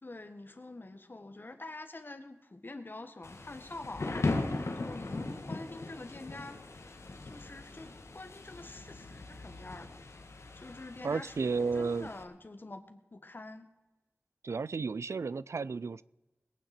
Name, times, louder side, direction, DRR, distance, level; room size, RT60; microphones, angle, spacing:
voice 1, 0.0-6.6 7.2-10.0 10.5-11.3 11.7-13.7, left 2 dB, 45° left, 1.5 m, -46 dB
Thunder / Rain, 3.2-12.2, left 2 dB, 85° left, 1.6 m, -39 dB
voice 2, 11.0-12.1 14.4-16.0, right 4 dB, 80° right, 0.3 m, -32 dB
21.5 x 9.2 x 4.3 m
wide cardioid pair, 70°, 5 cm